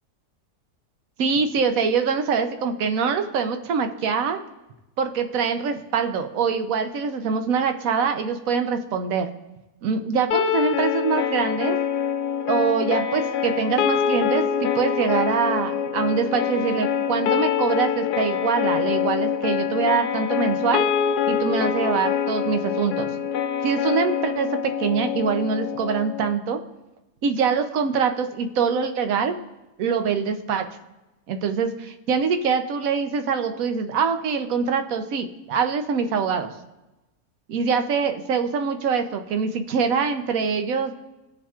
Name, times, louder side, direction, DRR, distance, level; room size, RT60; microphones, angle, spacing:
voice 1, 1.2-4.4 5.0-9.3 9.8-11.8 12.5-20.9 21.3-23.1 23.6-26.6 27.2-29.4 29.8-30.6 31.3-36.5 37.5-40.9, right 6 dB, 65° right, 7 dB, 1.1 m, -24 dB
sound 1, 10.3-26.3, left 8 dB, 85° left, 1.1 m, -25 dB
17.0 x 7.1 x 2.4 m, 1.0 s
omnidirectional pair, 1.6 m